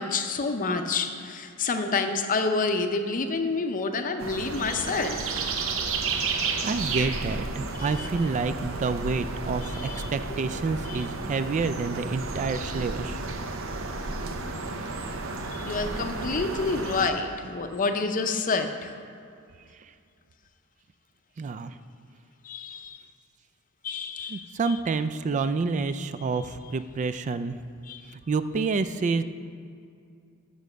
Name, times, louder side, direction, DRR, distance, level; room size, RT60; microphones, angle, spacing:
voice 1, 0.0-5.3 7.8-8.1 9.6-10.1 10.9-11.1 15.5-19.0 22.4-23.0 23.8-24.8 26.2-26.4 27.8-28.0, left 4 dB, 40° left, 6 dB, 0.6 m, -29 dB
sound 1, 4.2-17.1, right 3 dB, 65° right, 0.7 m, -32 dB
voice 2, 6.6-13.2 21.4-21.7 24.3-27.6 28.3-29.2, right 4 dB, 35° right, 12 dB, 0.3 m, -28 dB
7.1 x 6.3 x 6.6 m, 2.4 s
head